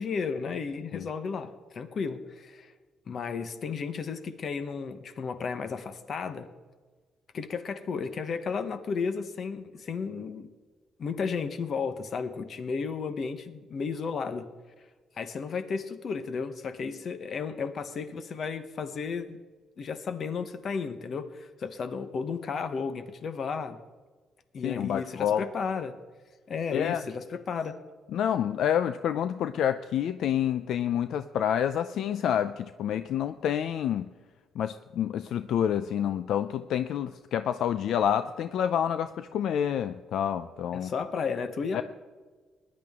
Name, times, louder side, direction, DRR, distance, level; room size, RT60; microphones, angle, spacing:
voice 1, 0.0-2.7 3.1-6.5 7.3-10.5 11.0-14.5 15.2-19.4 19.8-23.8 24.5-26.0 26.5-27.8 40.7-41.8, left 5 dB, 40° left, 10 dB, 1.0 m, -33 dB
voice 2, 24.6-25.5 26.7-27.0 28.1-34.1 34.6-40.9 41.7-41.8, left 9 dB, 60° left, 11 dB, 0.4 m, -28 dB
20.5 x 10.5 x 3.6 m, 1.4 s
cardioid pair, 155°, 0 cm